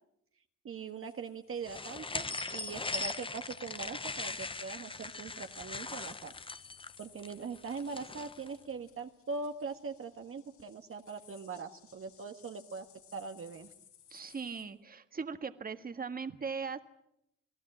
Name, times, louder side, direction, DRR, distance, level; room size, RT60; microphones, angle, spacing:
voice 1, 0.6-6.3 7.0-12.9 13.1-13.7, right 4 dB, 45° right, 6 dB, 1.5 m, -41 dB
sound 1, 0.8-14.6, left 9 dB, 90° left, 7.3 m, -61 dB
sound 2, 1.7-8.5, left 3 dB, 15° left, 0.9 m, -40 dB
voice 2, 14.1-16.8, right 5 dB, 30° right, 9 dB, 1.6 m, -39 dB
28.0 x 18.5 x 8.6 m, 0.79 s
cardioid pair, 90°, 30 cm